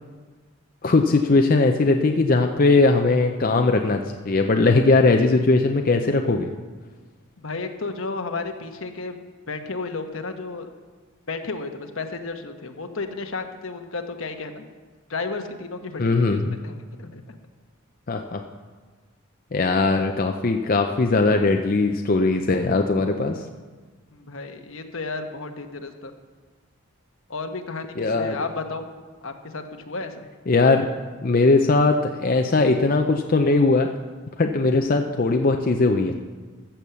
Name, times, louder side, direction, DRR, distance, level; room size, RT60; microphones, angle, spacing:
voice 1, 0.8-6.5 16.0-16.6 18.1-18.4 19.5-23.4 28.0-28.4 30.5-30.9 31.2-33.9 34.4-36.2, left 3 dB, 40° left, 4 dB, 0.5 m, -19 dB
voice 2, 7.4-9.2 9.5-10.7 11.3-14.6 15.1-17.4 24.1-26.1 27.3-28.9 29.2-30.3, left 3 dB, 70° left, 6 dB, 1.1 m, -33 dB
14.5 x 7.1 x 6.9 m, 1.4 s
head